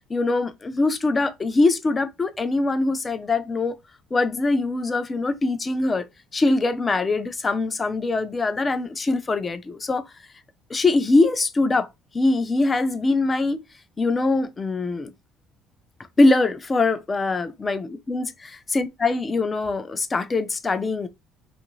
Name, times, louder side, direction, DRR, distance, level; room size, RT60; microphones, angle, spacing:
voice 1, 0.1-3.8 4.1-6.1 6.3-10.1 10.7-11.9 12.1-13.6 14.0-15.1 16.2-21.1, left 3 dB, 25° left, 0.4 m, -22 dB
2.6 x 2.5 x 2.9 m
cardioid pair, 100°, 0 cm